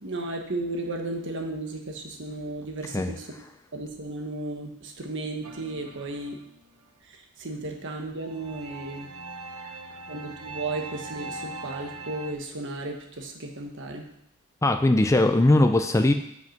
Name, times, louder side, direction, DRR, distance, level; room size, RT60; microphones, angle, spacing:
voice 1, 0.0-3.3 3.7-6.4 7.1-9.1 10.1-14.1, right 2 dB, 55° right, 3 dB, 1.3 m, -34 dB
sound 1, 5.4-6.8 8.2-12.3, right 3 dB, 75° right, 0.9 m, -40 dB
voice 2, 14.6-16.1, left 1 dB, 15° left, 6 dB, 0.4 m, -20 dB
7.7 x 6.0 x 5.9 m, 0.71 s
head